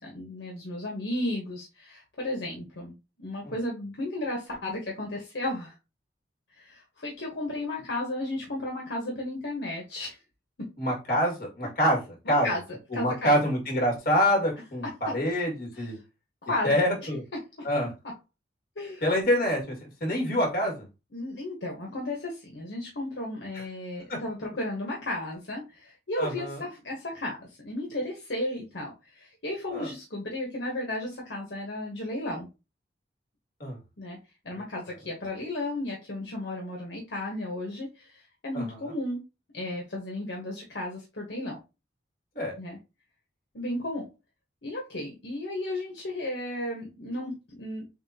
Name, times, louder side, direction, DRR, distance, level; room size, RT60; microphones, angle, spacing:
voice 1, 0.0-5.7 6.6-10.2 10.6-10.7 12.4-12.6 12.9-13.4 15.7-15.8 16.4-16.8 17.6-17.7 18.8-19.1 21.1-32.5 34.0-34.2 34.4-39.2 39.5-41.6 42.6-42.8 43.5-44.1 44.6-47.8, left 1 dB, 75° left, -1 dB, 1.1 m, -34 dB
voice 2, 10.8-12.0 12.3-12.5 12.9-16.0 16.6-17.2 17.6-17.9 19.0-19.8 20.0-20.7 23.5-23.6 24.1-24.2 26.2-26.6 29.7-29.9 33.6-33.8 38.5-38.8 42.4-42.5, equal, 50° left, -1 dB, 2.0 m, -26 dB
6.9 x 2.4 x 2.8 m, 0.28 s
head